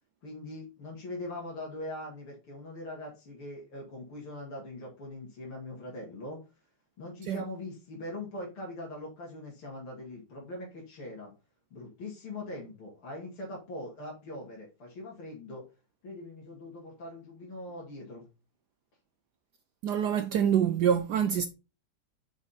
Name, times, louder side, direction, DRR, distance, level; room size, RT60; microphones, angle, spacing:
voice 1, 0.2-6.4 7.0-11.3 11.7-15.6 16.0-18.2, left 1 dB, 75° left, 2.9 m, -41 dB
voice 2, 19.8-21.5, right 8 dB, 85° right, 0.9 m, -26 dB
6.3 x 4.9 x 4.1 m
omnidirectional pair, 2.4 m